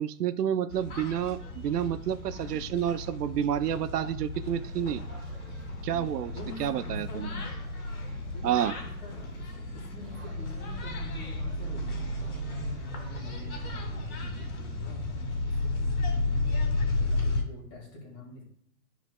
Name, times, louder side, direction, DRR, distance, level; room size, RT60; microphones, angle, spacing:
voice 1, 0.0-5.0 5.8-6.3 6.6-7.3 8.4-8.7, right 10 dB, 80° right, 13 dB, 0.7 m, -29 dB
sound 1, 0.7-17.4, left 2 dB, 65° left, 2.5 m, -33 dB
sound 2, 4.4-13.8, right 1 dB, 5° right, 0.5 m, -55 dB
voice 2, 6.3-7.5 8.3-16.6 17.0-18.4, left 2 dB, 20° left, -3 dB, 2.1 m, -46 dB
13.0 x 4.6 x 2.3 m, 0.68 s
hypercardioid pair, 170°, 47 cm